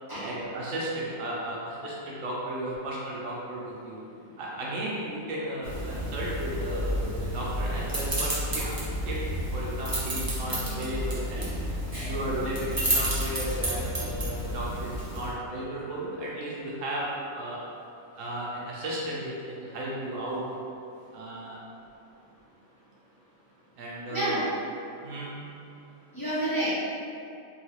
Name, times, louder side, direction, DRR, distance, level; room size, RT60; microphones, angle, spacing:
voice 1, 0.2-4.0 4.4-8.8 9.1-11.5 12.0-17.7 18.2-20.6 21.1-21.6 23.8-24.6 25.0-25.5, right 1 dB, 70° right, -5 dB, 0.9 m, -34 dB
sound 1, 5.6-15.3, equal, 25° right, 0.4 m, -31 dB
voice 2, 24.1-24.4 26.1-26.8, right 1 dB, 20° left, -13 dB, 0.8 m, -29 dB
3.7 x 2.3 x 2.8 m, 2.6 s
omnidirectional pair, 1.4 m